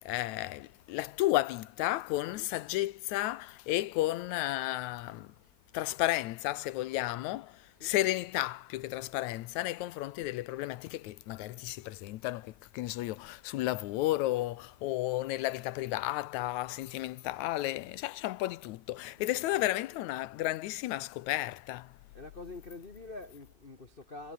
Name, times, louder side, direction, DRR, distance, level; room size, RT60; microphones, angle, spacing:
voice 1, 0.0-5.3 5.7-21.9, left 16 dB, 80° left, 2.1 m, -33 dB
voice 2, 19.1-19.7 22.1-24.3, left 3 dB, 45° left, 0.7 m, -46 dB
omnidirectional pair, 3.5 m